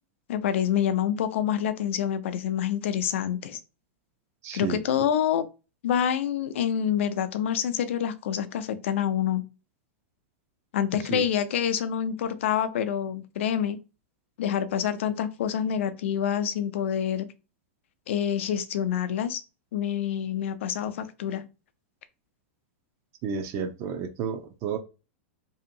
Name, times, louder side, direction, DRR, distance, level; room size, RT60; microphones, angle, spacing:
voice 1, 0.3-3.6 4.5-5.5 5.8-9.4 10.7-13.8 14.4-17.3 18.1-19.4 19.7-21.4, left 9 dB, 70° left, 0.5 m, -27 dB
voice 2, 4.4-4.8 11.1-11.2 23.2-24.8, right 6 dB, 40° right, 0.5 m, -31 dB
2.7 x 2.4 x 2.7 m
hypercardioid pair, 115°, 7 cm